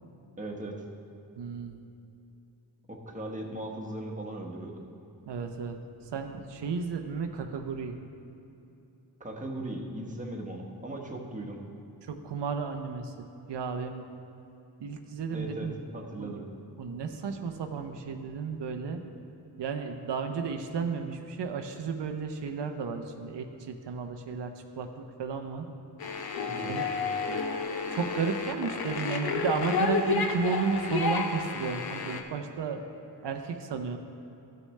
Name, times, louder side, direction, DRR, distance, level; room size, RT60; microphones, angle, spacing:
voice 1, 0.4-0.8 2.9-4.8 9.2-11.6 15.3-15.7 15.9-16.4 26.5-26.8, right 1 dB, 20° right, 0 dB, 1.1 m, -38 dB
voice 2, 1.4-1.8 5.3-8.0 12.0-13.1 13.5-14.0 14.8-15.8 16.1-16.4 16.8-19.0 19.6-25.7 26.7-26.9 27.9-32.8 33.2-34.0, right 5 dB, 90° right, 5 dB, 0.7 m, -33 dB
sound 1, 26.0-32.2, left 4 dB, 65° left, 0.7 m, -31 dB
14.0 x 6.5 x 3.2 m, 2.9 s
wide cardioid pair, 105°, 41 cm